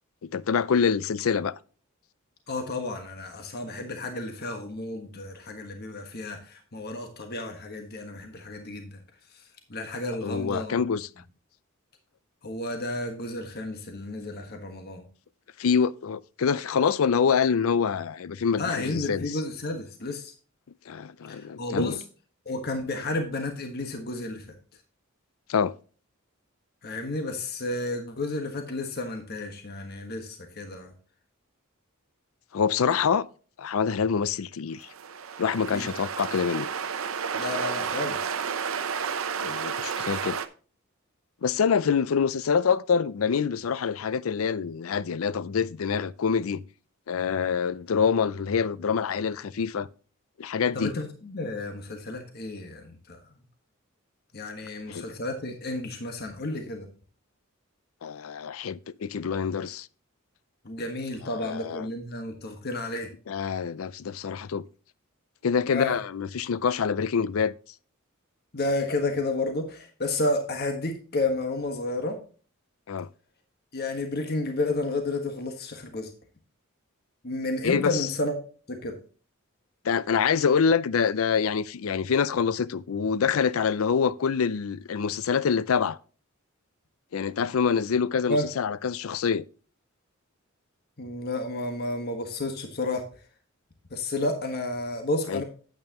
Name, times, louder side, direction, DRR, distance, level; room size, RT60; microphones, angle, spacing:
voice 1, 0.3-1.6 10.2-11.1 15.6-19.4 20.9-22.0 25.5-25.7 32.5-33.3 33.6-34.9 35.4-36.7 39.4-40.4 41.4-46.6 47.1-49.9 50.4-50.9 54.9-55.1 58.0-59.9 61.2-61.9 63.3-64.6 65.4-67.5 72.9-73.1 77.6-78.1 79.8-86.0 87.1-89.4 95.3-95.4, left 6 dB, 75° left, 0.5 m, -26 dB
voice 2, 2.5-9.0 9.7-10.8 12.4-15.0 18.6-20.3 21.3-21.9 22.4-24.5 26.8-30.9 35.7-35.9 37.4-38.2 50.7-53.2 54.3-56.9 60.6-63.1 65.7-66.0 68.5-72.2 73.7-76.1 77.2-78.4 78.7-79.0 88.3-88.5 91.0-93.0 93.9-95.4, left 2 dB, 50° left, 1.4 m, -31 dB
sound 1, 34.8-40.5, right 6 dB, 70° right, 0.7 m, -31 dB
9.0 x 8.6 x 2.9 m
head